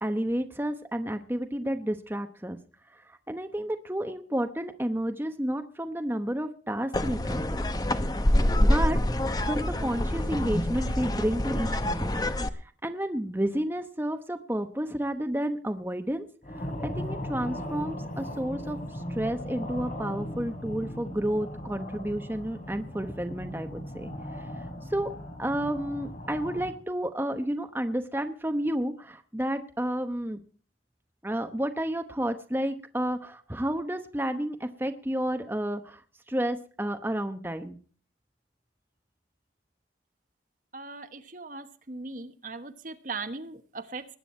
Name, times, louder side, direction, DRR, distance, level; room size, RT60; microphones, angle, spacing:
voice 1, 0.0-2.6 3.1-7.6 8.6-9.0 9.4-12.2 12.8-16.3 16.5-24.6 24.9-25.1 25.4-30.4 31.2-36.0 36.3-37.8, right 1 dB, 10° right, 7 dB, 0.9 m, -31 dB
sound 1, 6.9-12.5, left 1 dB, 20° left, 0.8 m, -26 dB
sound 2, 16.4-26.7, equal, 45° left, 3.2 m, -38 dB
voice 2, 40.7-44.1, right 3 dB, 45° right, 10 dB, 1.2 m, -39 dB
20.5 x 9.1 x 4.4 m, 0.42 s
head